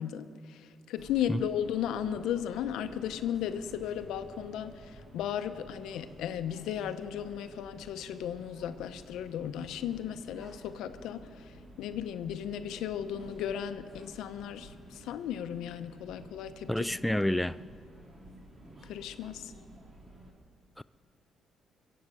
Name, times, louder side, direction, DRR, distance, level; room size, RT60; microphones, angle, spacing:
voice 1, 0.0-16.7 18.8-19.5, left 9 dB, 85° left, 10 dB, 0.8 m, -35 dB
sound 1, 1.0-20.3, right 1 dB, 35° right, 3.2 m, -52 dB
voice 2, 16.7-17.6 20.8-20.9, left 1 dB, 5° left, 15 dB, 0.3 m, -29 dB
23.0 x 8.1 x 7.8 m, 2.3 s
cardioid pair, 90°, 0 cm